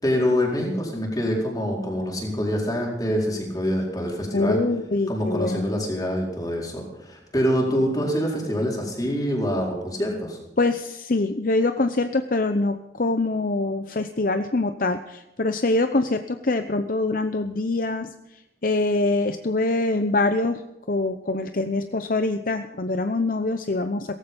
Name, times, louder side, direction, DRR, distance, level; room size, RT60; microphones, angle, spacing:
voice 1, 0.0-4.6 5.1-10.4, equal, 20° left, -1 dB, 4.3 m, -25 dB
voice 2, 4.3-5.7 10.6-18.1 18.6-20.6 20.9-24.2, left 2 dB, 50° left, 8 dB, 0.7 m, -24 dB
17.5 x 15.0 x 5.4 m, 0.93 s
head